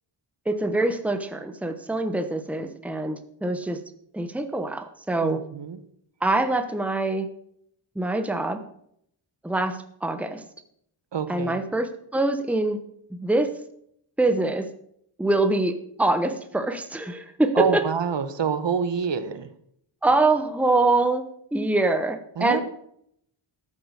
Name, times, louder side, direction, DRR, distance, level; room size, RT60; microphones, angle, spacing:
voice 1, 0.5-3.8 4.1-5.4 6.2-7.3 8.0-8.6 9.4-10.4 11.3-12.8 13.1-13.5 14.2-14.7 15.2-17.8 20.0-22.6, right 2 dB, 5° right, 8 dB, 1.0 m, -24 dB
voice 2, 5.2-5.8 11.1-11.6 17.5-19.5 22.4-22.6, right 6 dB, 60° right, 11 dB, 1.3 m, -26 dB
13.5 x 8.8 x 6.4 m, 0.69 s
wide cardioid pair, 165°, 48 cm